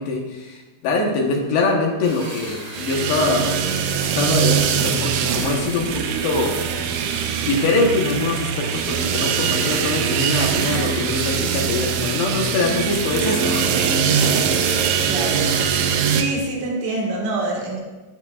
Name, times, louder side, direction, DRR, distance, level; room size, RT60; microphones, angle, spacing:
voice 1, 0.0-3.7 4.0-6.5 6.9-13.7, left 3 dB, 70° left, 0 dB, 3.0 m, -23 dB
sound 1, 2.0-16.1, right 1 dB, 35° right, 1.3 m, -39 dB
sound 2, 2.7-16.2, right 7 dB, 85° right, 3.1 m, -22 dB
voice 2, 15.1-15.6 16.1-17.8, right 2 dB, 55° right, -1 dB, 2.6 m, -25 dB
18.0 x 7.4 x 2.4 m, 1.2 s
omnidirectional pair, 5.2 m